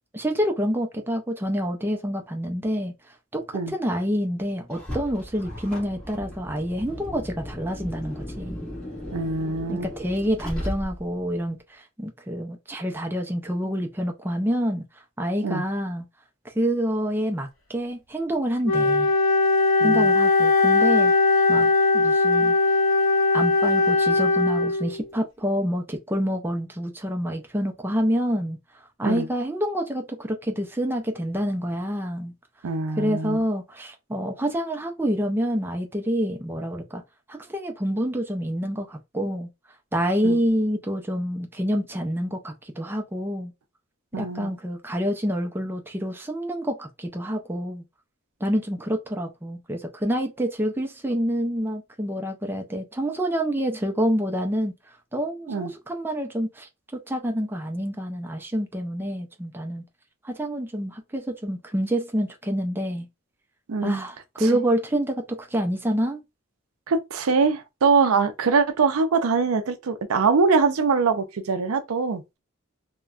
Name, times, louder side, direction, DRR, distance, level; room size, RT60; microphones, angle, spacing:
voice 1, 0.1-2.9 3.3-8.7 9.7-14.8 15.2-16.1 16.4-19.1 19.8-21.1 21.5-22.6 23.3-28.6 29.0-32.3 33.0-37.0 37.3-39.5 39.9-43.5 44.1-47.8 48.4-54.7 55.1-59.8 60.2-63.1 63.8-66.2, equal, 10° right, 0.4 m, -27 dB
Car, 4.7-11.2, equal, 5° left, 1.6 m, -36 dB
voice 2, 9.1-9.9 15.4-15.6 19.8-20.1 29.0-29.3 32.6-33.4 40.2-40.4 44.1-44.5 55.5-55.7 63.7-64.0 64.4-64.5 66.9-72.2, right 4 dB, 90° right, 0.5 m, -23 dB
Wind instrument woodwind instrument, 18.7-25.0, left 3 dB, 75° left, 0.7 m, -20 dB
3.4 x 2.2 x 2.4 m
head